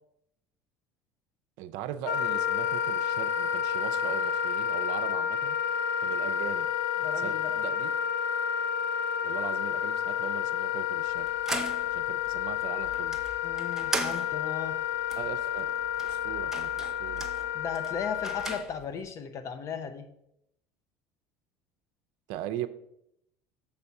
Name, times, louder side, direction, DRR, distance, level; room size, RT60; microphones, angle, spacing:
voice 1, 1.6-5.6 6.0-6.7 7.2-7.9 9.2-11.3 11.8-13.2 15.2-15.7 16.0-17.3 22.3-22.7, right 12 dB, 75° right, 9 dB, 0.5 m, -39 dB
Wind instrument woodwind instrument, 2.0-18.6, left 8 dB, 80° left, 0.5 m, -30 dB
voice 2, 7.0-7.5 13.4-14.8 17.5-20.1, left 6 dB, 45° left, 9 dB, 0.9 m, -36 dB
sound 1, 11.1-19.1, right 2 dB, 5° right, 0.8 m, -39 dB
7.0 x 4.2 x 5.8 m, 0.78 s
supercardioid pair, 95°, 7 cm